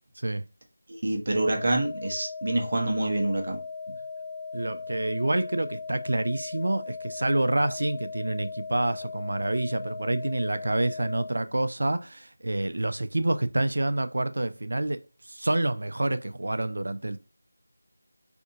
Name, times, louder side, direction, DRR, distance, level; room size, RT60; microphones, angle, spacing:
voice 1, 0.9-3.6, right 2 dB, 45° right, 0.9 m, -27 dB
sound 1, 1.3-11.3, left 4 dB, 25° left, 0.6 m, -38 dB
voice 2, 4.5-17.2, right 2 dB, 65° right, 0.3 m, -28 dB
3.5 x 2.6 x 2.7 m
figure-of-eight pair, 170°, 0 cm